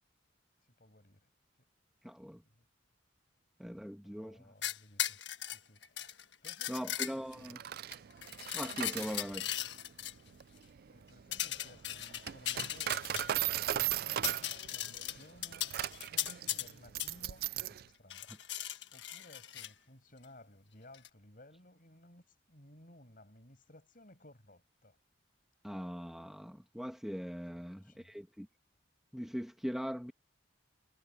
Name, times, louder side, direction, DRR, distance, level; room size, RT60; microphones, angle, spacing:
voice 1, 0.8-1.3 2.4-2.7 4.0-5.2 5.5-6.1 6.4-7.6 10.9-15.7 16.4-18.4 18.9-25.0 27.5-28.2, left 1 dB, 45° left, 7.2 m, -59 dB
voice 2, 2.0-2.4 3.6-4.5 6.7-7.6 8.5-9.5 25.6-28.5 29.1-30.1, equal, ahead, 1.6 m, -41 dB
sound 1, 4.6-7.5 7.9-10.1 11.3-13.4 13.8-13.9 14.1-16.7 17.0-17.1 18.1-19.7 20.9-21.1, left 12 dB, 65° left, 1.6 m, -38 dB
Coin (dropping), 7.3-17.8, right 12 dB, 50° right, 0.3 m, -38 dB
head